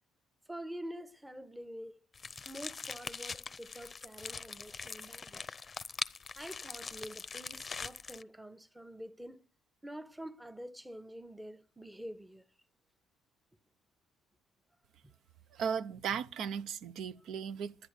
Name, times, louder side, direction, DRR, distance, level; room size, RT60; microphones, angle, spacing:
voice 1, 0.5-2.0 2.5-5.4 6.4-9.4 9.8-12.4 15.0-15.1, equal, 10° right, 0.9 m, -46 dB
sound 1, 2.1-8.2, left 5 dB, 35° left, 0.6 m, -42 dB
voice 2, 15.5-17.8, right 7 dB, 70° right, 0.6 m, -36 dB
11.0 x 10.0 x 8.1 m
supercardioid pair, 65°, 0 cm